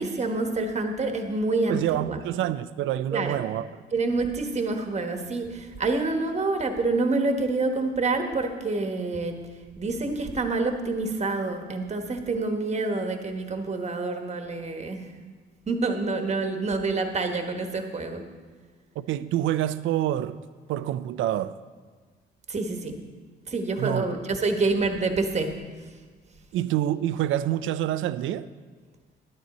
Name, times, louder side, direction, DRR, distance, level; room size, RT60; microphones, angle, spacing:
voice 1, 0.0-2.2 3.1-3.4 3.9-9.4 9.8-15.1 15.7-18.2 22.5-23.0 23.5-25.5, right 3 dB, 35° right, 5 dB, 1.2 m, -27 dB
voice 2, 1.7-3.7 19.0-20.4 20.7-21.6 23.8-24.2 26.5-28.5, right 12 dB, 80° right, 15 dB, 0.4 m, -27 dB
11.0 x 9.5 x 4.2 m, 1.4 s
cardioid pair, 90°, 20 cm